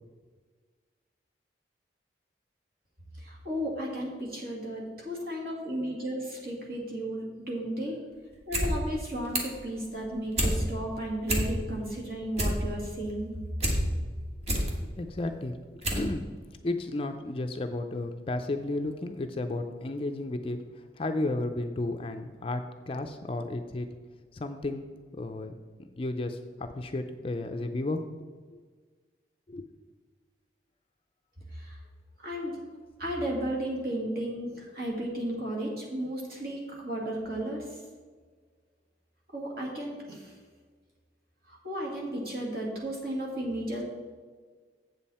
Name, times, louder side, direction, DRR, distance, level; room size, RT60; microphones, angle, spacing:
voice 1, 3.2-8.0 8.5-13.3 31.5-31.8 32.2-32.6 33.0-37.7 39.3-40.3 41.5-43.8, right 1 dB, 55° right, -2 dB, 2.3 m, -34 dB
sound 1, 8.3-8.7 9.0-9.6 10.0-10.6 10.9-11.0 11.2-11.8 12.1-13.8 14.2-14.7 15.3-15.4 15.8-16.1 16.4-16.5, equal, 35° right, 1.5 m, -28 dB
voice 2, 15.0-15.6 15.9-16.3 16.6-23.9 24.3-28.0 28.5-28.6 29.5-29.6, left 2 dB, 30° left, 6 dB, 0.4 m, -33 dB
7.9 x 7.3 x 4.2 m, 1.5 s
head